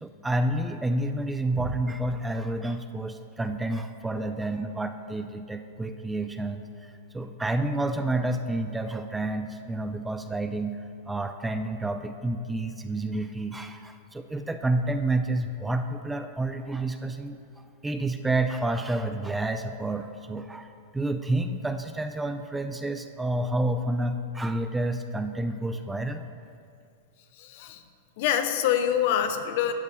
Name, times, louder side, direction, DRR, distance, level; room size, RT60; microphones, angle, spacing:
voice 1, 0.0-10.8 11.1-20.7 20.9-26.2, right 2 dB, 10° right, 7 dB, 0.4 m, -29 dB
voice 2, 27.4-27.8 28.2-29.7, left 9 dB, 60° left, 8 dB, 0.6 m, -25 dB
12.0 x 8.1 x 2.2 m, 2.4 s
hypercardioid pair, 115°, 0 cm